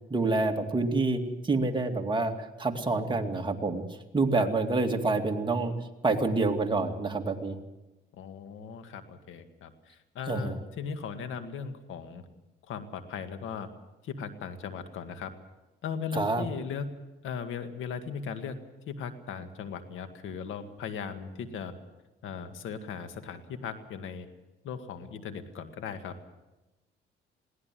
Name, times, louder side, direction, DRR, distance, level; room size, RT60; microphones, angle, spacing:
voice 1, 0.1-3.8 4.1-5.7 6.0-7.6 10.3-10.6 16.1-16.4, right 3 dB, 25° right, 3 dB, 2.4 m, -27 dB
voice 2, 8.1-12.2 12.7-13.7 14.0-15.3 15.8-16.9 17.2-18.6 18.9-21.7 22.2-24.3 24.6-26.2, left 6 dB, 80° left, 8 dB, 2.0 m, -38 dB
22.0 x 17.0 x 7.7 m, 1.1 s
cardioid pair, 90°, 20 cm